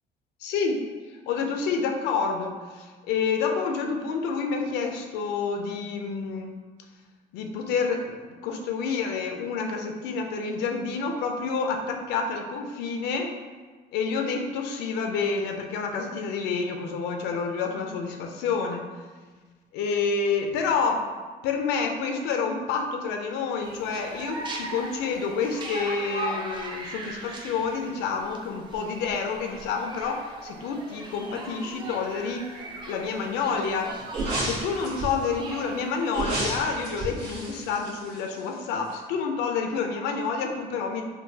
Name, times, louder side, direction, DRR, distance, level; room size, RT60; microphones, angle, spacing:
voice 1, 0.4-6.5 7.3-8.1 8.4-13.3 13.9-18.8 19.7-21.1 21.4-32.5 32.8-33.9 34.4-41.0, left 5 dB, 90° left, 3 dB, 0.4 m, -28 dB
sound 1, 23.6-36.2, right 1 dB, 30° right, 0.5 m, -39 dB
sound 2, 34.1-35.3 36.1-38.6 38.9-39.0, right 1 dB, 75° right, 1.4 m, -31 dB
3.7 x 2.3 x 2.7 m, 1.4 s
cardioid pair, 110°, 17 cm